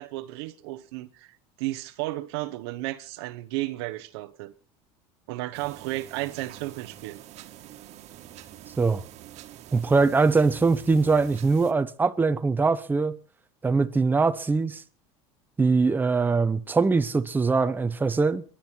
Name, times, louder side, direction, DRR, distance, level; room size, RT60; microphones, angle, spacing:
voice 1, 0.0-4.5 5.3-7.2, right 18 dB, 85° right, 1.1 m, -33 dB
sound 1, 5.5-11.7, right 12 dB, 55° right, 1.7 m, -46 dB
voice 2, 9.7-13.2 13.6-14.8 15.6-18.4, right 4 dB, 15° right, 1.0 m, -22 dB
23.0 x 10.5 x 4.5 m
supercardioid pair, 115°, 13 cm